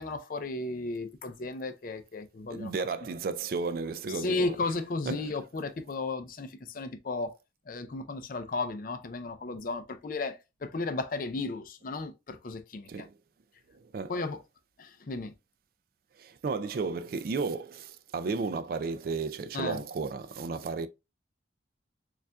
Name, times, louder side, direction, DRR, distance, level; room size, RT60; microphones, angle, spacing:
voice 1, 0.0-2.7 4.2-7.3 7.7-13.1 14.1-14.4 14.8-15.3 19.5-19.8, left 3 dB, 50° left, 0.5 m, -34 dB
voice 2, 2.5-4.6 5.1-5.3 12.9-13.1 13.7-14.1 16.2-20.9, right 4 dB, 50° right, 0.3 m, -33 dB
6.6 x 2.4 x 2.2 m
head